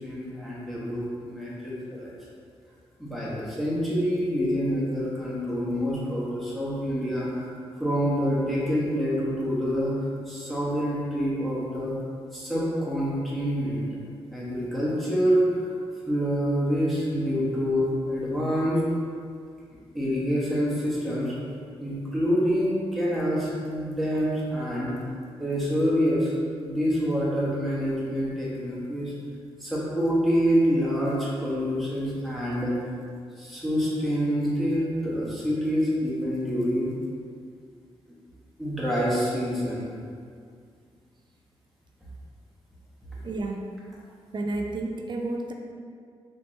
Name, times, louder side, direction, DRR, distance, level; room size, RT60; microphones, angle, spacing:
voice 1, 0.0-2.2 3.0-7.5 7.8-11.9 12.3-13.9 14.3-15.7 16.1-18.8 19.9-21.3 21.8-24.9 25.4-26.3 26.6-29.1 29.6-32.7 33.4-36.9 38.6-39.9, equal, ahead, -8 dB, 1.5 m, -26 dB
voice 2, 43.2-43.8 44.3-45.5, right 2 dB, 40° right, 2 dB, 0.5 m, -31 dB
4.3 x 2.9 x 3.2 m, 2.2 s
supercardioid pair, 50°, 11 cm